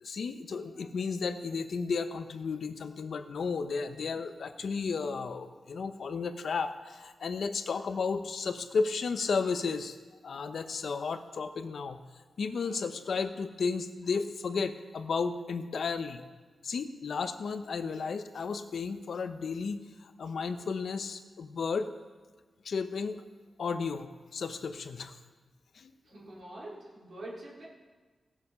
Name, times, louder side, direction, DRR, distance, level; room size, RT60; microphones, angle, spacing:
voice 1, 0.0-10.0 10.2-12.0 12.4-16.2 16.6-21.9 22.6-23.2 23.6-25.2 25.7-25.9, left 5 dB, 70° left, 9 dB, 0.8 m, -33 dB
voice 2, 26.0-27.7, right 1 dB, 65° right, -6 dB, 4.0 m, -45 dB
16.5 x 7.2 x 5.5 m, 1.4 s
wide cardioid pair, 130°, 0 cm